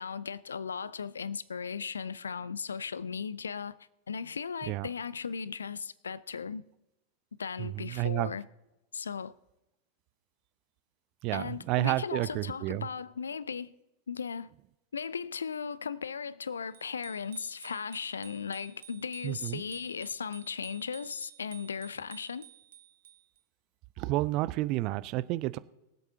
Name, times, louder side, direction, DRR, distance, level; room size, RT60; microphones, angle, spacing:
voice 1, 0.0-3.8 4.1-6.6 7.4-8.5 8.9-9.3 11.3-13.7 14.1-14.5 14.9-22.5, left 6 dB, 70° left, 0.4 m, -37 dB
voice 2, 7.6-8.3 11.2-12.9 19.2-19.6 24.0-25.6, right 18 dB, 40° right, 0.4 m, -30 dB
Bicycle bell, 16.7-23.4, right 11 dB, 60° right, 1.0 m, -53 dB
22.5 x 8.1 x 2.8 m
figure-of-eight pair, 90°, 0 cm